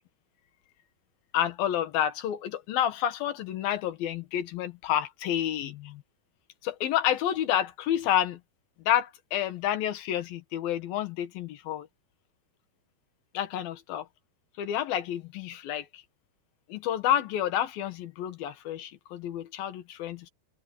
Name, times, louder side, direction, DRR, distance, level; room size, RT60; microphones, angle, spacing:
voice 1, 1.3-6.0 6.6-8.4 8.9-11.9 13.3-14.0 14.6-16.0 16.7-20.3, left 11 dB, 65° left, 3.0 m, -29 dB
open air
omnidirectional pair, 5.0 m